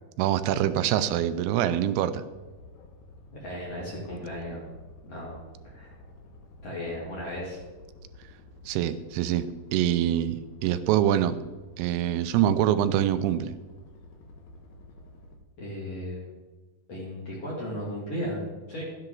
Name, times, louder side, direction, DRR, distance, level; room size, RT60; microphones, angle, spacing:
voice 1, 0.2-2.2 8.7-11.4 11.8-13.5, right 11 dB, 85° right, 12 dB, 2.5 m, -25 dB
boat-taka-distant, 2.3-15.4, left 2 dB, 70° left, 3.0 m, -51 dB
voice 2, 3.3-4.6 5.0-5.4 5.6-6.0 6.6-7.6 15.6-16.3 16.9-18.8, equal, 45° left, -5 dB, 2.9 m, -35 dB
13.0 x 10.5 x 3.9 m, 1.2 s
omnidirectional pair, 4.5 m